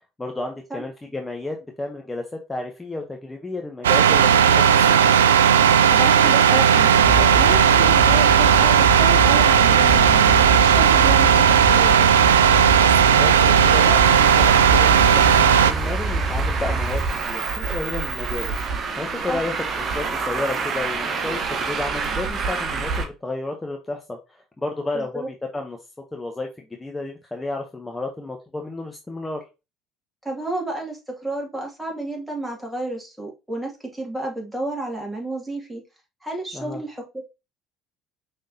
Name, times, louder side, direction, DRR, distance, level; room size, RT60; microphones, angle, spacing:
voice 1, 0.2-2.2 2.5-4.6 4.9-5.0 12.8-25.8 26.1-29.4 36.5-36.8, left 2 dB, 15° left, 3 dB, 0.9 m, -32 dB
sound 1, 3.8-15.7, right 8 dB, 90° right, 0.3 m, -15 dB
voice 2, 5.9-12.1 19.3-19.4 24.9-25.3 30.2-35.8 36.2-37.2, right 1 dB, 10° right, -1 dB, 2.4 m, -31 dB
sound 2, 7.0-17.1, right 1 dB, 60° right, 1.8 m, -26 dB
Traffic noise roadway noise, 13.5-23.0, right 4 dB, 45° right, 1.2 m, -27 dB
5.3 x 3.5 x 2.8 m, 0.27 s
hypercardioid pair, 65°, 0 cm